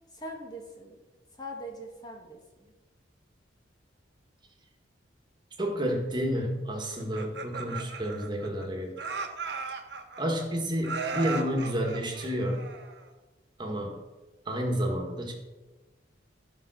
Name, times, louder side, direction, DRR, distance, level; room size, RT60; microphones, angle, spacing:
voice 1, 0.1-1.0 1.3-2.7, equal, 20° left, 1 dB, 1.4 m, -42 dB
voice 2, 5.6-8.9 10.2-12.7 13.6-14.0 14.5-15.3, equal, 25° right, 1 dB, 1.8 m, -30 dB
Laughter, 7.0-8.7 9.0-10.4 10.8-13.1, right 4 dB, 60° right, 1.1 m, -37 dB
13.0 x 5.4 x 6.3 m, 1.2 s
head